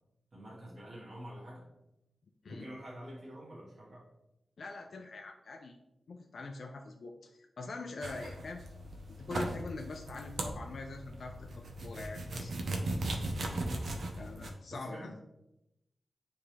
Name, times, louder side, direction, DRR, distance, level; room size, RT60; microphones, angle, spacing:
voice 1, 0.3-1.7 2.5-4.1 13.4-13.7 14.7-15.1, equal, 45° right, -7 dB, 1.6 m, -47 dB
voice 2, 4.6-5.8 6.1-8.6 9.2-11.5 11.8-12.5 14.1-15.1, left 3 dB, 70° left, 2 dB, 0.6 m, -43 dB
sound 1, 8.0-14.5, right 1 dB, 80° right, 0.9 m, -38 dB
9.6 x 3.5 x 3.3 m, 0.88 s
wide cardioid pair, 110°, 0 cm